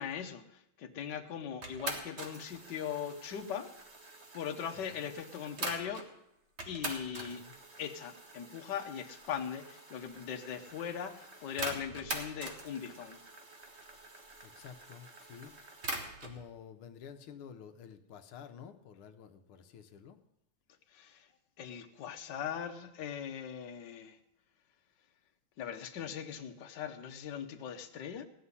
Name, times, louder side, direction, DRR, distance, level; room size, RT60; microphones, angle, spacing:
voice 1, 0.0-3.7 4.3-6.1 6.7-7.4 7.8-13.2 20.9-21.3 21.6-24.2 25.6-28.2, left 8 dB, 60° left, 5 dB, 1.5 m, -40 dB
sound 1, 1.6-6.1 6.6-16.4, right 2 dB, 35° right, 1.7 m, -44 dB
voice 2, 7.1-7.6 14.4-15.6 15.8-20.2, left 8 dB, 90° left, 7 dB, 1.7 m, -51 dB
16.5 x 5.6 x 9.7 m, 0.81 s
omnidirectional pair, 2.3 m